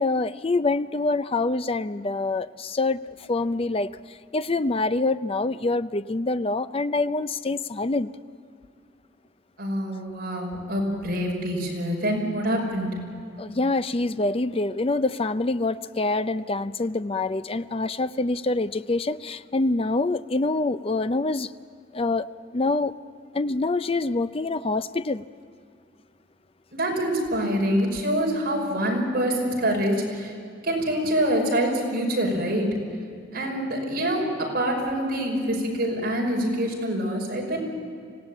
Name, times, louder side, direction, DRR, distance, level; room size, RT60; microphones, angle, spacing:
voice 1, 0.0-3.9 4.3-8.1 13.4-21.5 21.9-22.3 22.5-22.9 23.3-25.2, left 2 dB, 30° left, 12 dB, 0.5 m, -25 dB
voice 2, 9.6-12.9 26.7-30.3 30.6-32.7 33.3-37.6, equal, 50° right, -1 dB, 5.7 m, -25 dB
25.5 x 17.0 x 9.0 m, 2.3 s
head